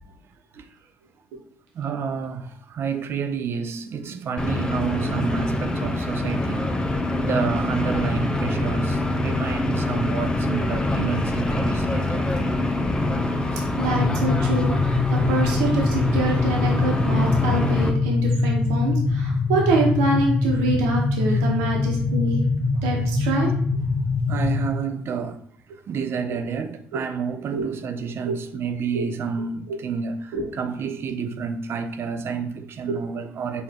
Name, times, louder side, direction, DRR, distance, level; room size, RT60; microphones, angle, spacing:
voice 1, 1.7-6.8 7.2-12.3 13.5-13.7 21.3-21.5 22.7-22.8 24.3-25.4 25.7-33.6, right 6 dB, 55° right, 0.5 m, -29 dB
sound 1, 4.4-17.9, left 2 dB, 15° left, 0.6 m, -25 dB
sound 2, 13.8-24.7, left 3 dB, 55° left, 0.5 m, -23 dB
voice 2, 13.8-14.7 15.1-22.4 22.8-23.5 27.5-27.7 28.3-28.4 28.9-29.1 30.3-30.5 32.9-33.0, right 2 dB, 85° right, 1.1 m, -25 dB
4.7 x 2.6 x 3.6 m
supercardioid pair, 70°, 5 cm